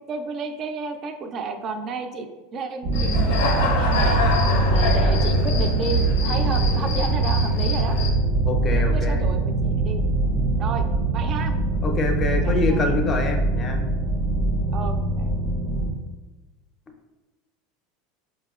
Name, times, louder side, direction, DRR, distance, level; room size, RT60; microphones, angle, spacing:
voice 1, 0.1-4.2 4.7-7.9 8.7-10.0 10.6-10.9 11.1-11.5 12.4-12.9 14.7-15.3, right 4 dB, 40° right, 6 dB, 0.3 m, -32 dB
sound 1, 2.8-15.9, right 2 dB, 75° right, 0.6 m, -22 dB
Human voice / Cricket, 2.9-8.1, left 4 dB, 85° left, 0.5 m, -27 dB
voice 2, 8.4-9.2 11.8-13.8, left 3 dB, 30° left, 4 dB, 0.5 m, -25 dB
4.6 x 2.1 x 2.3 m, 1.2 s
supercardioid pair, 130°, 0 cm